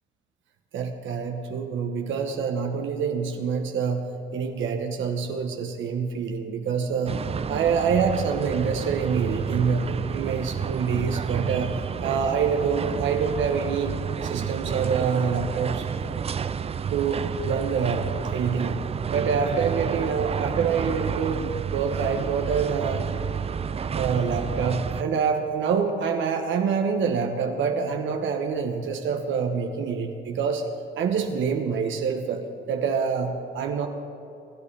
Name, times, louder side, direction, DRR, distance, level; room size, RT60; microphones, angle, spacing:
voice 1, 0.7-7.2 7.5-13.9 14.2-16.0 16.9-18.8 19.1-21.4 21.7-23.1 23.9-30.6 31.0-33.9, right 6 dB, 75° right, 4 dB, 1.1 m, -26 dB
sound 1, 7.1-25.0, right 7 dB, 30° right, 0.4 m, -30 dB
26.5 x 9.8 x 3.3 m, 2.7 s
cardioid pair, 90°, 20 cm